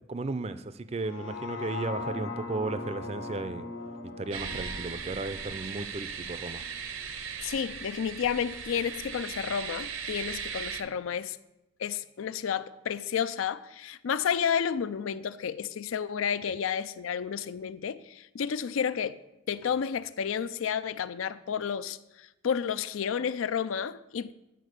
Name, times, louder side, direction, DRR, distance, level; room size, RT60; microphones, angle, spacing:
voice 1, 0.0-3.7 4.0-6.6 16.4-16.5, right 3 dB, 30° right, 0.4 m, -35 dB
sound 1, 1.0-7.1 7.6-7.7, left 3 dB, 65° left, 0.9 m, -40 dB
sound 2, 4.3-10.8, right 6 dB, 80° right, 0.8 m, -38 dB
voice 2, 7.4-11.4 11.8-19.2 19.5-24.3, left 7 dB, 85° left, 0.4 m, -31 dB
10.0 x 4.4 x 6.5 m
head